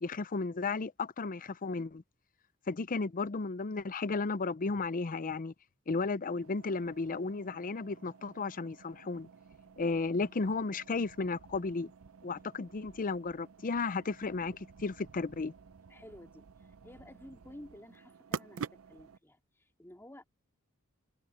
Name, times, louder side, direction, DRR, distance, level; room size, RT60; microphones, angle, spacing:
voice 1, 0.0-2.0 2.7-5.5 5.9-9.3 9.8-11.9 12.2-15.5, left 3 dB, 40° left, 0.6 m, -34 dB
sound 1, 6.3-19.2, right 5 dB, 65° right, 0.6 m, -49 dB
voice 2, 9.9-10.3 15.9-20.2, left 1 dB, 10° left, 2.9 m, -53 dB
head